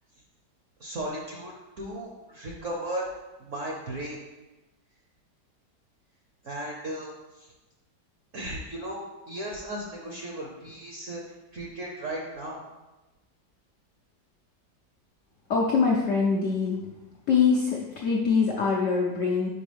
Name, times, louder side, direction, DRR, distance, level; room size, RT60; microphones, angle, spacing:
voice 1, 0.8-3.1 3.4-4.2 6.4-7.1 7.4-7.5 8.3-11.2 11.5-12.6, right 1 dB, 60° right, -1 dB, 0.8 m, -36 dB
voice 2, 15.5-16.8 17.3-19.5, left 5 dB, 80° left, -2 dB, 0.6 m, -23 dB
5.4 x 5.1 x 3.4 m, 1.1 s
omnidirectional pair, 2.1 m